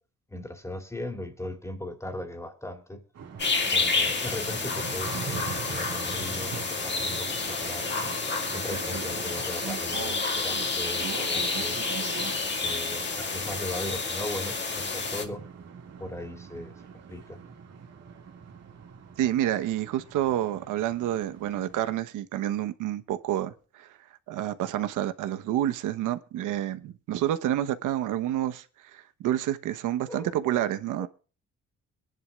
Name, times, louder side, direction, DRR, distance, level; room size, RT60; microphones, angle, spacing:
voice 1, 0.3-3.0 3.7-7.9 8.5-11.8 12.4-15.5 16.0-17.4 30.1-30.6 31.0-31.1, left 1 dB, 10° left, 2.8 m, -38 dB
sound 1, 3.1-21.8, right 6 dB, 55° right, 2.3 m, -42 dB
sound 2, 3.4-15.2, left 4 dB, 35° left, 2.1 m, -29 dB
voice 2, 19.2-23.9 24.3-28.6 28.9-31.1, right 12 dB, 90° right, 1.1 m, -29 dB
23.0 x 10.5 x 2.4 m
cardioid pair, 90°, 30 cm